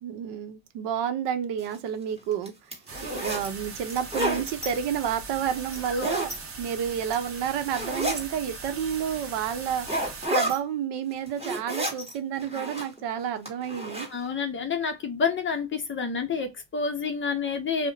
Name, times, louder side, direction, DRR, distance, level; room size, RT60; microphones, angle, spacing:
voice 1, 0.0-2.5 3.0-6.3 6.6-14.1, right 8 dB, 60° right, 0.7 m, -30 dB
sound 1, 1.6-1.7 2.3-3.5 3.9-4.7 5.7-6.3 6.9-7.3 7.7-8.3 8.9-9.0 9.8-10.6 11.1-12.1 12.4-13.0 13.4-14.1, equal, 10° right, 1.3 m, -30 dB
sound 2, 2.9-10.3, right 4 dB, 30° right, 0.9 m, -40 dB
voice 2, 14.1-17.9, left 5 dB, 25° left, 0.6 m, -29 dB
2.4 x 2.1 x 2.7 m
supercardioid pair, 90°, 47 cm